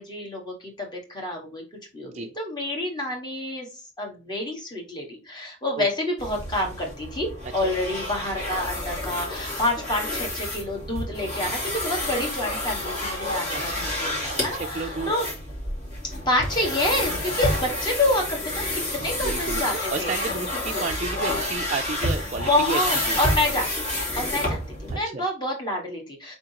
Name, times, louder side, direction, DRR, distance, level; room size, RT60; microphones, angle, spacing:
voice 1, 0.0-1.6 1.9-3.7 4.0-15.3 16.2-20.3 20.7-20.8 22.4-26.3, left 1 dB, 20° left, 0 dB, 1.5 m, -28 dB
sound 1, 6.2-25.0, left 1 dB, 35° left, 2.3 m, -29 dB
voice 2, 13.5-13.9 14.3-15.1 19.2-22.8 23.1-23.2 24.9-25.2, right 4 dB, 35° right, 3 dB, 0.3 m, -32 dB
4.8 x 3.8 x 2.8 m, 0.33 s
head